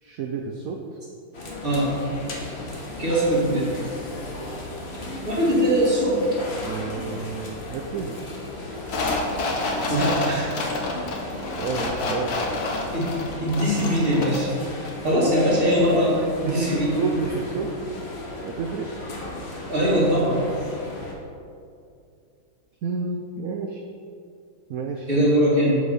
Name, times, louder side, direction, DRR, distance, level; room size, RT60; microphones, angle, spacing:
voice 1, 0.0-0.8 3.8-4.0 6.2-6.3 6.6-8.2 11.6-12.5 16.0-17.7 18.4-18.9 22.8-23.8 24.7-25.1, right 4 dB, 80° right, 2 dB, 0.7 m, -30 dB
sound 1, 1.3-21.1, left 2 dB, 40° left, 1.2 m, -35 dB
voice 2, 3.0-3.7 5.2-6.3 9.9-10.5 12.9-14.5 15.0-17.0 19.7-20.4 25.1-25.8, equal, 25° right, -6 dB, 2.2 m, -21 dB
sound 2, 8.9-14.5 14.9-15.0, left 2 dB, 55° left, 1.4 m, -29 dB
7.3 x 6.3 x 5.6 m, 2.5 s
omnidirectional pair, 2.2 m